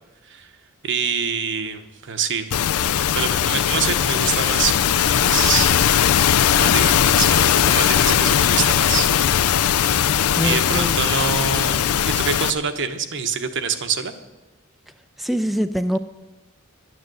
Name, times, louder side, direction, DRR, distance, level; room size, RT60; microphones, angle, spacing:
voice 1, 0.8-2.6 3.1-6.3 6.6-9.1 9.4-9.5 10.4-14.1, right 6 dB, 60° right, 8 dB, 1.0 m, -26 dB
sound 1, 2.5-12.5, left 9 dB, 80° left, 0.5 m, -19 dB
voice 2, 10.4-11.0 15.2-16.0, equal, ahead, 8 dB, 0.4 m, -23 dB
11.5 x 9.4 x 7.8 m, 1.1 s
head